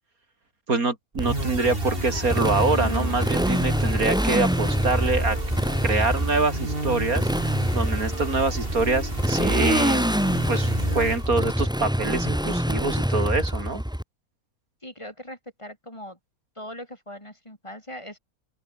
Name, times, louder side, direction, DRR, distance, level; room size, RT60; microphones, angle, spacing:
voice 1, 0.7-5.4 5.8-7.2 7.7-10.1 10.5-13.8, right 3 dB, 75° right, 4.1 m, -25 dB
sound 1, 1.1-11.6, right 2 dB, 40° right, 4.1 m, -33 dB
Motorcycle, 1.2-14.0, equal, 5° right, 2.2 m, -25 dB
voice 2, 14.8-16.2 16.6-18.2, equal, 20° left, 5.0 m, -40 dB
open air
omnidirectional pair, 1.5 m